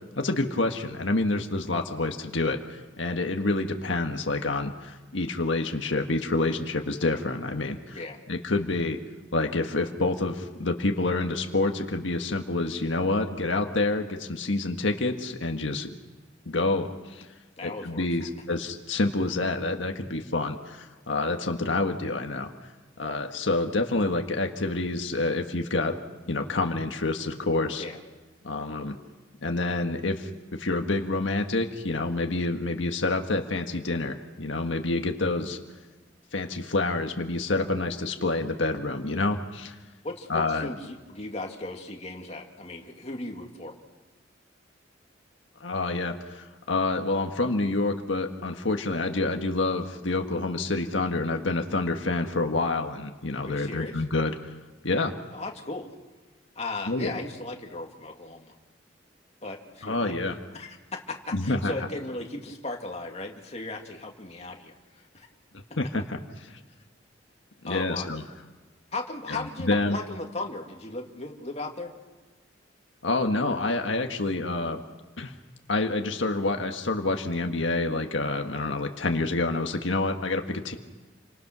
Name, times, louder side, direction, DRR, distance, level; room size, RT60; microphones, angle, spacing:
voice 1, 0.2-8.0 8.3-9.0 9.3-15.9 16.4-17.3 17.6-22.5 23.0-25.9 26.3-27.8 28.4-29.0 29.4-35.6 36.3-39.7 40.3-40.7 45.6-54.5 54.8-55.1 56.9-57.1 59.8-60.4 61.3-61.7 65.8-66.6 67.6-68.2 69.3-70.0 73.0-74.8 75.2-75.3 75.7-80.7, left 2 dB, 80° left, 4 dB, 1.6 m, -28 dB
voice 2, 17.6-18.0 27.8-28.0 40.0-43.7 53.4-54.0 55.3-55.9 56.6-58.5 59.4-65.3 67.6-68.1 68.9-71.9, left 2 dB, 35° left, 1 dB, 2.5 m, -37 dB
30.0 x 25.5 x 6.2 m, 1.3 s
head